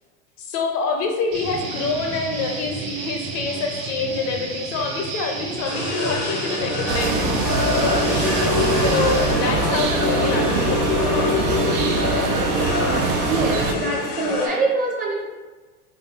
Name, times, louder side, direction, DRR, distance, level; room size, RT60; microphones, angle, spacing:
voice 1, 0.4-7.4 8.5-11.1, left 4 dB, 50° left, 3 dB, 0.6 m, -26 dB
Guitar, 1.3-9.3, right 4 dB, 65° right, 0.9 m, -31 dB
sound 1, 5.6-14.5, left 3 dB, 75° left, 0.8 m, -25 dB
sound 2, 6.9-13.7, right 4 dB, 85° right, 0.6 m, -23 dB
voice 2, 13.3-15.3, right 2 dB, 20° right, -2 dB, 0.6 m, -24 dB
4.4 x 2.3 x 2.3 m, 1.3 s
hypercardioid pair, 105°, 44 cm